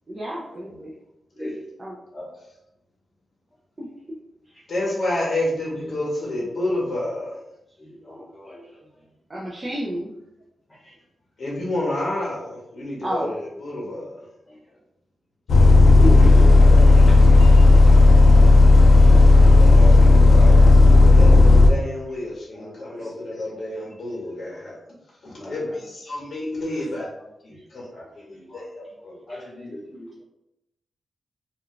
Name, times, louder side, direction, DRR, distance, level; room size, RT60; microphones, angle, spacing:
voice 1, 0.1-0.9 1.8-2.0 3.8-3.9 9.3-10.1 13.0-13.3 16.0-16.6 23.0-23.1, equal, 20° right, -6 dB, 0.4 m, -30 dB
voice 2, 4.7-7.3 11.4-14.1 15.8-15.9 16.2-16.9 19.4-24.8 25.2-27.1 27.7-27.8 28.5-29.1, left 1 dB, 50° left, -4 dB, 0.8 m, -29 dB
voice 3, 8.1-8.6 15.5-16.2 16.7-16.9 22.5-22.7 25.4-25.5 27.9-28.0 28.5-28.6 29.3-30.2, left 1 dB, 20° left, -6 dB, 1.1 m, -38 dB
Bus, 15.5-21.7, left 2 dB, 75° left, 0.4 m, -11 dB
2.3 x 2.2 x 3.7 m, 0.85 s
wide cardioid pair, 165°, 0 cm